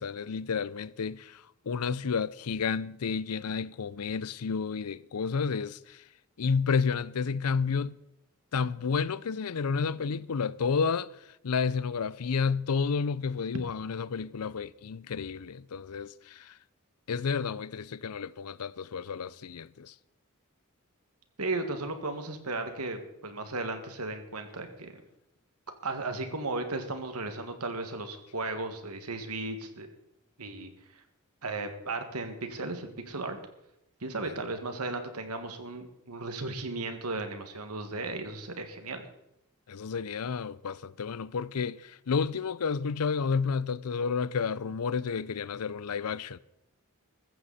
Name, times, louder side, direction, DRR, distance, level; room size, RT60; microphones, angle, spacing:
voice 1, 0.0-6.0 6.4-8.0 8.5-11.1 11.4-16.5 17.1-19.9 34.2-34.3 39.7-46.4, left 5 dB, 80° left, 0.5 m, -31 dB
voice 2, 21.4-24.9 25.8-29.9 30.4-30.7 31.4-33.4 34.0-39.0, right 2 dB, 85° right, 2.0 m, -35 dB
15.5 x 14.0 x 4.2 m
head